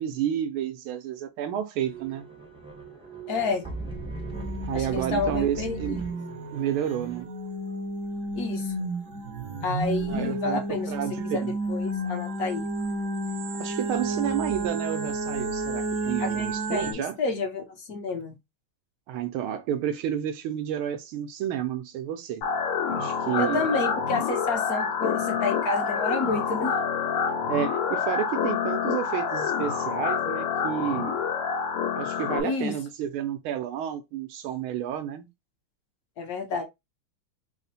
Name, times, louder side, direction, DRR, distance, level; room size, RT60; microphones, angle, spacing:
voice 1, 0.0-2.3 4.7-6.0 6.5-7.3 10.1-11.5 13.6-17.2 19.1-22.4 22.9-23.7 27.5-31.2 31.9-35.3, right 10 dB, 80° right, 1.5 m, -30 dB
sound 1, 1.8-7.2, right 3 dB, 5° right, 0.5 m, -39 dB
voice 2, 3.3-3.6 4.7-6.0 8.3-8.7 9.6-10.9 11.3-11.4 11.7-12.7 16.2-18.4 23.4-26.7 32.4-32.7 36.2-36.6, left 3 dB, 60° left, 1.1 m, -29 dB
sound 2, 4.3-16.9, right 2 dB, 60° right, 1.1 m, -31 dB
sound 3, 22.4-32.4, left 6 dB, 85° left, 1.9 m, -27 dB
4.2 x 2.1 x 4.0 m
omnidirectional pair, 2.4 m